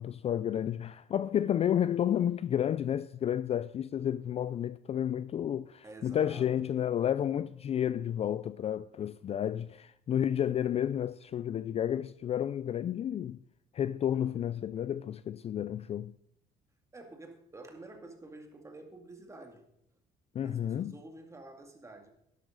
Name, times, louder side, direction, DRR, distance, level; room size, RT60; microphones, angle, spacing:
voice 1, 0.0-13.4 13.7-16.1 20.3-20.9, left 10 dB, 35° left, 0.3 m, -31 dB
voice 2, 5.8-6.5 16.9-19.7 20.4-22.1, right 2 dB, 15° right, 2.3 m, -49 dB
12.0 x 11.5 x 3.9 m
cardioid pair, 110°, 17 cm